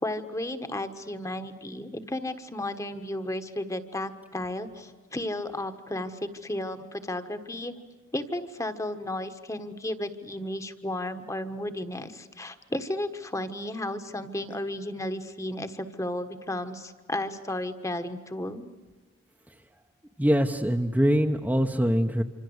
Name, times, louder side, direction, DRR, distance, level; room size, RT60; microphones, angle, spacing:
voice 1, 0.0-7.7 8.1-18.7, left 1 dB, 15° left, 9 dB, 1.4 m, -33 dB
voice 2, 20.2-22.2, equal, 10° right, 3 dB, 1.0 m, -23 dB
27.0 x 26.0 x 8.0 m, 1.3 s
head